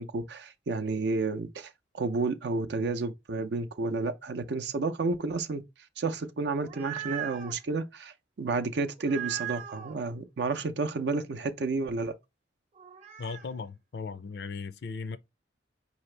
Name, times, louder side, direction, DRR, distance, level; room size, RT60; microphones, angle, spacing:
voice 1, 0.0-5.6 6.0-12.2, right 3 dB, 70° right, 0.5 m, -31 dB
sound 1, 6.4-7.6 9.0-9.9 12.8-13.5, right 11 dB, 40° right, 0.8 m, -39 dB
voice 2, 13.2-15.2, left 4 dB, 60° left, 0.4 m, -37 dB
4.9 x 2.8 x 3.2 m
head